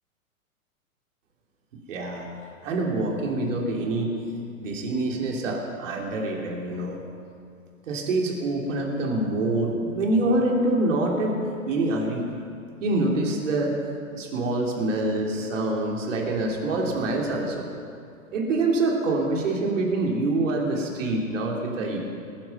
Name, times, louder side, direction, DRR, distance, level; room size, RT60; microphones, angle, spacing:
voice 1, 1.9-2.3 2.6-4.2 4.6-7.0 7.9-12.3 12.8-13.7 14.1-17.7 18.3-22.0, right 2 dB, 60° right, -1 dB, 3.1 m, -25 dB
20.0 x 11.0 x 5.5 m, 2.3 s
figure-of-eight pair, 110°, 42 cm